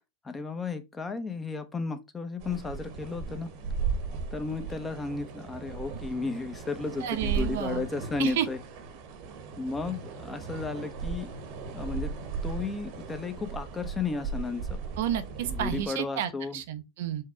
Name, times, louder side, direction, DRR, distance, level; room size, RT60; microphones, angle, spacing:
voice 1, 0.2-3.5 4.3-8.6 9.6-11.3 11.7-12.1 12.4-14.8 15.4-16.6, left 4 dB, 15° left, 0.8 m, -34 dB
sound 1, 2.4-15.9, right 5 dB, 60° right, 1.1 m, -36 dB
voice 2, 7.0-7.9 8.2-8.5 15.0-17.2, right 10 dB, 75° right, 0.7 m, -31 dB
4.7 x 2.3 x 4.2 m
supercardioid pair, 115°, 0 cm